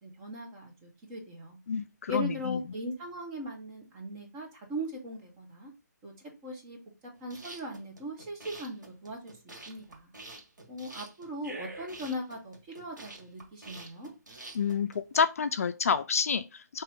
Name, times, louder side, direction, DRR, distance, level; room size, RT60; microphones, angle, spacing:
voice 1, 0.0-1.6 2.1-5.7 6.0-6.1 6.4-6.8 7.2-10.1 10.7-14.1, equal, 20° right, 1.3 m, -39 dB
voice 2, 1.7-2.6 14.5-16.8, left 6 dB, 50° left, 0.4 m, -29 dB
sound 1, 7.2-15.2, right 2 dB, 85° right, 1.6 m, -47 dB
4.4 x 3.0 x 3.5 m
hypercardioid pair, 155°, 10 cm